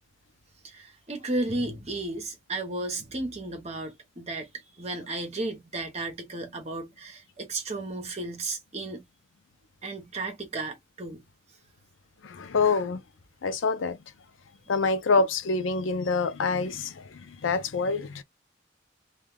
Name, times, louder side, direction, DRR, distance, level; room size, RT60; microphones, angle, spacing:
voice 1, 0.6-4.5 4.8-9.0 9.8-11.2, right 2 dB, 35° right, 0.8 m, -34 dB
voice 2, 12.2-13.0 13.4-14.0 14.7-18.2, left 4 dB, 80° left, 0.5 m, -26 dB
2.3 x 2.3 x 3.3 m
head